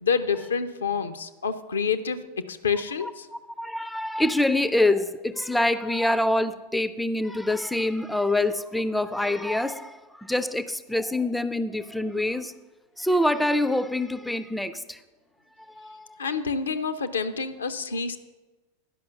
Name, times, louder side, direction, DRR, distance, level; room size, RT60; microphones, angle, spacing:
voice 1, 0.0-3.3 16.2-18.2, left 6 dB, 70° left, 9 dB, 0.5 m, -28 dB
voice 2, 3.0-12.5 13.0-15.0 15.7-16.2, left 1 dB, 5° left, 13 dB, 0.4 m, -26 dB
11.0 x 5.4 x 6.7 m, 1.2 s
figure-of-eight pair, 90°, 0 cm